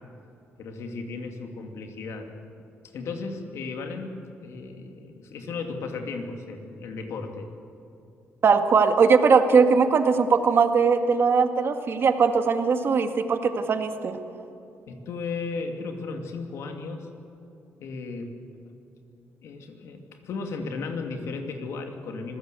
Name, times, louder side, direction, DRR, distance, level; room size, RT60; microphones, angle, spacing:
voice 1, 0.6-2.3 2.9-4.1 4.4-7.5 14.9-17.1 17.8-18.4 19.4-22.4, left 4 dB, 75° left, 4 dB, 2.7 m, -35 dB
voice 2, 8.4-14.2, right 5 dB, 50° right, 7 dB, 1.8 m, -20 dB
26.0 x 17.0 x 8.2 m, 2.8 s
cardioid pair, 90°, 5 cm